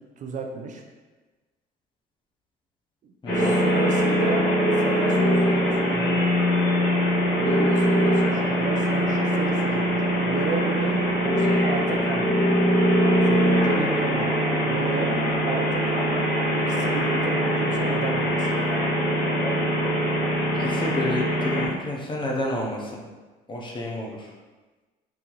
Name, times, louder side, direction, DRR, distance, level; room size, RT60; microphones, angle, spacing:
voice 1, 0.2-0.8 3.0-4.4 4.8-6.2 7.4-12.6 13.3-14.3 14.6-15.1 15.4-16.2 16.6-18.5, right 4 dB, 50° right, 3 dB, 0.5 m, -33 dB
voice 2, 3.2-3.6 20.6-23.0 23.5-24.3, left 1 dB, 30° left, -1 dB, 0.7 m, -30 dB
sound 1, 3.3-21.6, equal, 90° left, 1.2 m, -22 dB
3.9 x 2.7 x 3.0 m, 1.3 s
cardioid pair, 110°, 17 cm